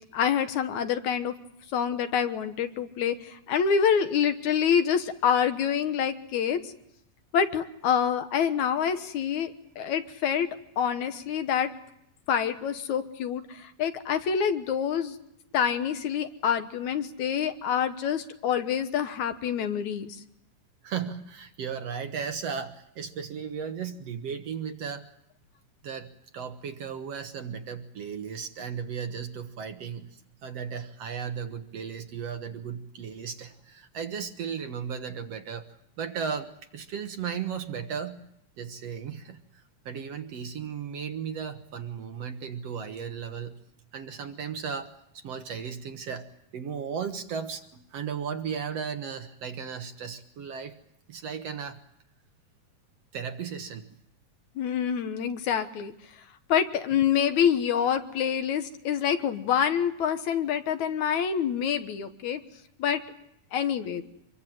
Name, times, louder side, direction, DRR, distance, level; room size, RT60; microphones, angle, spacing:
voice 1, 0.1-1.3 1.7-6.7 7.3-10.5 10.8-11.7 12.3-15.2 15.5-20.2 54.6-55.9 56.5-62.4 62.8-63.0 63.5-64.0, left 8 dB, 65° left, 9 dB, 2.5 m, -26 dB
voice 2, 20.8-25.1 25.8-38.2 38.6-43.6 43.9-46.3 46.5-50.8 51.1-51.8 53.1-53.9, right 7 dB, 60° right, 7 dB, 2.1 m, -35 dB
25.5 x 22.5 x 7.8 m, 0.77 s
omnidirectional pair, 3.7 m